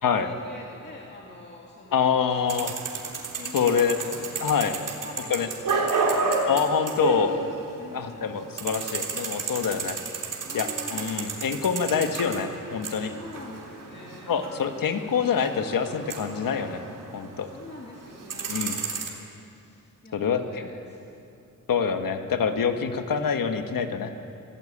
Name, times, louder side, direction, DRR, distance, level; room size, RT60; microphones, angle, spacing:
voice 1, 0.1-2.1 3.3-4.4 5.0-6.5 7.8-8.5 9.6-10.1 10.4-11.3 13.0-14.5 17.4-21.1, left 2 dB, 30° left, -2 dB, 2.4 m, -45 dB
voice 2, 1.9-2.7 3.5-4.0 4.4-4.8 5.3-5.5 6.5-7.3 7.9-10.0 10.5-13.1 14.3-16.8 17.1-17.5 18.5-18.8 20.1-20.7 21.7-24.1, left 6 dB, 75° left, 7 dB, 1.6 m, -26 dB
sound 1, 2.5-17.6 17.9-19.1, right 4 dB, 65° right, 3.5 m, -31 dB
26.0 x 17.0 x 8.7 m, 2.7 s
wide cardioid pair, 130°, 34 cm